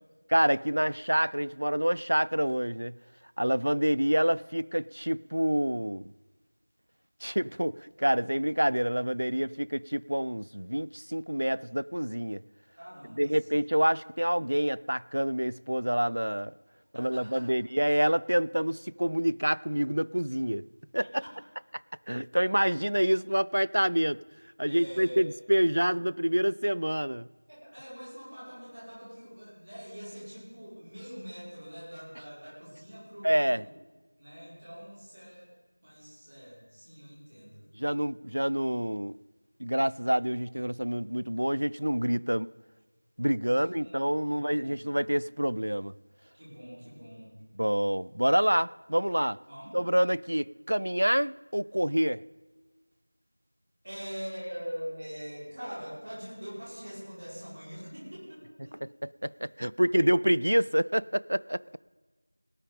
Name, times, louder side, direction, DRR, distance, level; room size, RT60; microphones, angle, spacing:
voice 1, 0.3-2.9 3.4-6.1 7.2-12.4 13.2-16.5 16.9-20.7 20.9-21.2 22.1-24.2 24.6-27.3 33.2-33.6 37.8-39.2 39.6-42.5 43.2-45.9 47.6-49.4 49.7-52.2 59.2-61.6, equal, 70° right, 0.3 m, -27 dB
voice 2, 12.8-13.5 16.9-17.5 21.2-21.3 24.7-25.3 27.5-33.7 34.2-35.5 35.8-37.6 43.5-45.0 46.3-47.3 49.5-49.8 53.8-58.8, equal, 35° right, 5.5 m, -43 dB
18.0 x 9.0 x 5.2 m
figure-of-eight pair, 175°, 0 cm